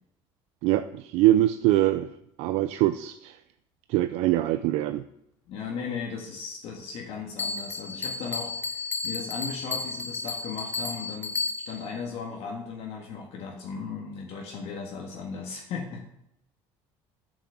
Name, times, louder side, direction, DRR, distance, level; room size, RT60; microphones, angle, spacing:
voice 1, 0.6-2.1 2.4-3.4 3.9-5.0, right 14 dB, 75° right, 10 dB, 0.5 m, -23 dB
voice 2, 5.5-11.3 11.7-16.0, left 5 dB, 60° left, 0 dB, 1.8 m, -36 dB
Bell, 7.4-11.9, left 4 dB, 20° left, 1.0 m, -33 dB
8.3 x 6.2 x 7.4 m, 0.80 s
cardioid pair, 130°, 11 cm